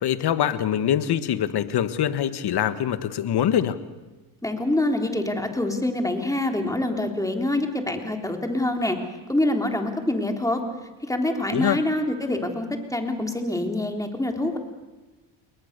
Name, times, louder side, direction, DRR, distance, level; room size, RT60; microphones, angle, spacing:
voice 1, 0.0-3.8 11.5-11.8, left 10 dB, 55° left, 12 dB, 1.7 m, -24 dB
voice 2, 4.4-9.0 9.3-10.6 11.0-14.6, left 1 dB, 5° left, 3 dB, 3.6 m, -25 dB
29.5 x 21.5 x 6.8 m, 1.2 s
cardioid pair, 100°, 46 cm